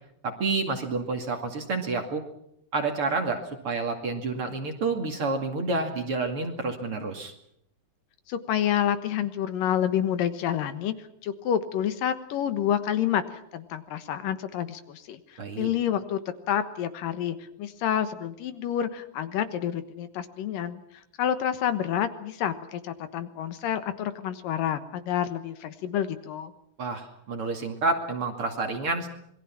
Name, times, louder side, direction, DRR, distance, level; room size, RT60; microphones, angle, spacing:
voice 1, 0.2-2.2 2.7-7.3 15.4-15.7 26.8-29.1, right 3 dB, 45° right, 4 dB, 2.9 m, -29 dB
voice 2, 8.3-10.9 11.2-16.2 16.5-20.8 21.2-26.5, left 10 dB, 75° left, 10 dB, 2.9 m, -28 dB
27.0 x 22.0 x 5.9 m, 0.74 s
omnidirectional pair, 4.1 m